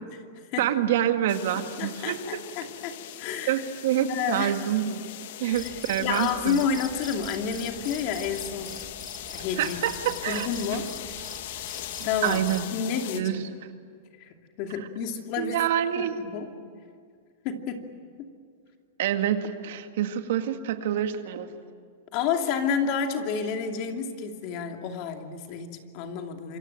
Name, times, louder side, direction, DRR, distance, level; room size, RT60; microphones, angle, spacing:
voice 1, 0.6-2.4 3.5-6.6 9.6-10.5 12.0-12.7 13.1-13.4 15.4-16.2 19.0-21.5, right 10 dB, 65° right, 7 dB, 2.0 m, -27 dB
sound 1, 1.3-13.2, left 12 dB, 65° left, 1.6 m, -40 dB
voice 2, 1.8-3.6 4.1-4.5 5.4-5.7 6.0-8.8 9.3-9.8 10.3-11.0 12.0-12.5 12.7-13.4 14.2-15.6 16.0-16.5 17.4-17.9 18.2-18.3 22.1-26.6, left 6 dB, 45° left, 4 dB, 2.7 m, -30 dB
Cricket, 5.5-12.7, left 2 dB, 10° left, 2.0 m, -44 dB
27.0 x 24.5 x 9.0 m, 2.1 s
supercardioid pair, 140°, 0 cm